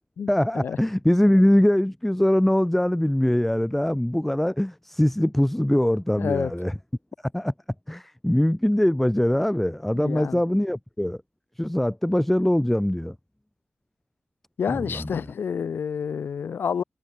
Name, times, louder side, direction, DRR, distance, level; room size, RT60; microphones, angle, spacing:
voice 1, 0.3-6.7 7.3-7.5 7.9-11.2 11.6-13.2 14.7-15.1, left 1 dB, 5° left, 3.7 m, -22 dB
voice 2, 6.2-6.5 9.9-10.4 14.6-16.8, left 7 dB, 85° left, 3.7 m, -28 dB
wide cardioid pair, 170°, 4 cm